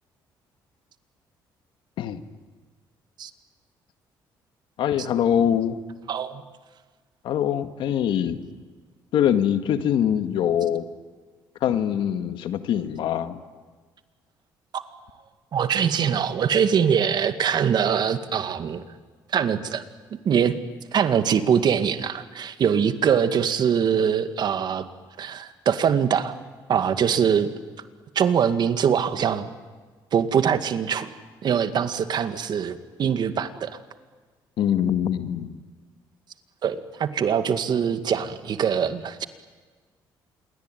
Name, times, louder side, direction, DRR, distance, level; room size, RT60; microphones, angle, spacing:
voice 1, 4.8-5.8 7.2-8.4 9.1-10.8 11.6-13.4 34.6-35.6, left 9 dB, 75° left, 9 dB, 1.9 m, -23 dB
voice 2, 6.1-6.4 14.7-14.8 15.5-18.9 19.3-19.8 20.3-20.5 20.9-24.8 25.2-26.3 26.7-27.5 28.2-29.5 30.1-31.1 31.4-33.7 36.6-39.2, right 7 dB, 55° right, 10 dB, 2.1 m, -23 dB
28.0 x 22.0 x 9.3 m, 1.4 s
cardioid pair, 85°, 9 cm